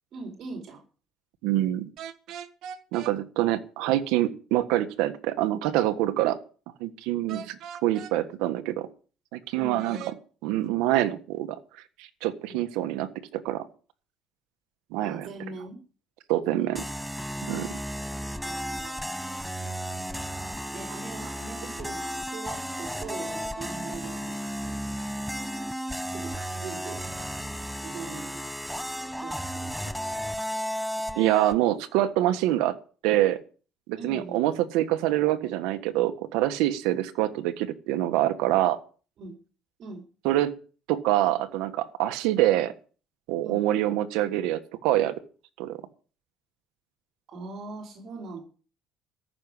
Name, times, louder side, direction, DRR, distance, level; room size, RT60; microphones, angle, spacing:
voice 1, 0.1-0.8 7.3-7.5 9.6-10.1 12.5-12.6 15.0-15.8 16.4-16.8 18.4-19.2 20.7-24.8 26.1-27.0 27.8-28.4 29.2-29.7 30.0-30.1 34.0-34.4 39.2-39.4 39.8-40.0 43.4-43.6 47.3-48.4, right 4 dB, 50° right, 1 dB, 4.4 m, -41 dB
voice 2, 1.4-1.9 2.9-6.4 6.8-7.4 7.8-8.9 9.3-10.0 10.4-11.6 12.0-13.6 14.9-15.3 16.3-16.8 17.5-17.7 31.1-32.8 33.0-33.4 33.9-38.8 40.2-40.5 40.9-42.7 43.3-45.1 45.6-45.8, right 14 dB, 90° right, 10 dB, 1.5 m, -25 dB
sound 1, 2.0-3.1 7.3-8.1 9.8-10.2, right 8 dB, 65° right, 1.5 m, -40 dB
sound 2, 16.7-31.6, equal, ahead, 0.8 m, -34 dB
14.5 x 6.8 x 9.9 m, 0.38 s
cardioid pair, 125°, 0 cm